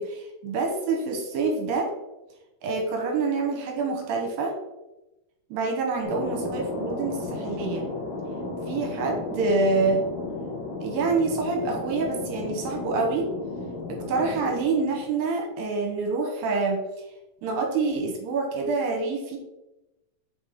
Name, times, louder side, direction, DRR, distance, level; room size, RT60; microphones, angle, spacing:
voice 1, 0.0-1.9 2.6-4.5 5.5-7.9 8.7-10.0 10.8-13.3 14.1-16.8 17.4-19.4, right 3 dB, 75° right, 2 dB, 2.3 m, -26 dB
Thunder, 6.0-15.3, left 2 dB, 45° left, 1.6 m, -34 dB
5.6 x 4.8 x 3.5 m, 0.98 s
omnidirectional pair, 4.7 m